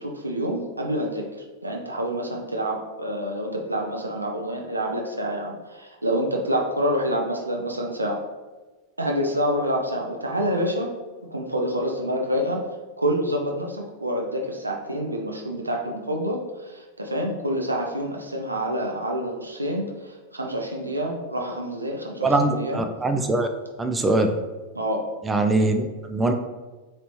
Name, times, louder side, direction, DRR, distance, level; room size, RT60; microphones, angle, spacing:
voice 1, 0.0-8.2 9.0-10.9 11.3-12.7 13.0-22.8 24.7-25.1, equal, 85° right, 0 dB, 0.4 m, -27 dB
voice 2, 22.2-23.5 23.8-24.3 25.3-26.3, right 2 dB, 15° right, 5 dB, 0.3 m, -22 dB
3.1 x 2.8 x 3.0 m, 1.2 s
figure-of-eight pair, 90°, 0 cm